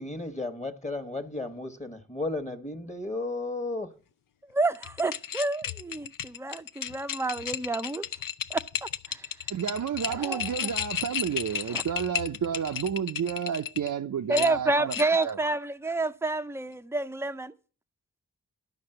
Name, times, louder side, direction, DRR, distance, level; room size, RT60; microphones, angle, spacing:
voice 1, 0.0-3.9, left 2 dB, 20° left, 1.2 m, -34 dB
voice 2, 4.5-8.1 8.5-9.3 10.1-10.5 11.7-11.8 14.3-17.5, right 2 dB, 5° right, 0.5 m, -29 dB
sound 1, 4.8-13.9 14.3-15.3, left 9 dB, 70° left, 0.5 m, -34 dB
voice 3, 9.5-15.0 15.2-15.4, right 8 dB, 60° right, 0.5 m, -30 dB
11.5 x 5.2 x 7.7 m
cardioid pair, 50°, 35 cm